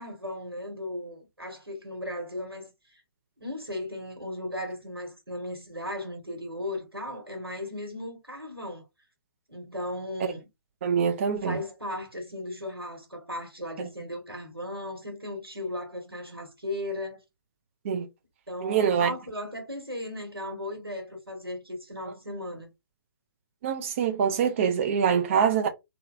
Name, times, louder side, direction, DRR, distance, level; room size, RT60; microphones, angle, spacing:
voice 1, 0.0-3.0 3.4-8.8 9.5-10.4 11.4-17.2 18.5-22.7, left 1 dB, 90° right, 1.2 m, -36 dB
voice 2, 10.8-11.6 13.8-13.9 17.8-18.1 18.6-19.1 23.6-25.7, right 7 dB, 35° right, 0.4 m, -24 dB
2.6 x 2.2 x 2.3 m
figure-of-eight pair, 130°, 12 cm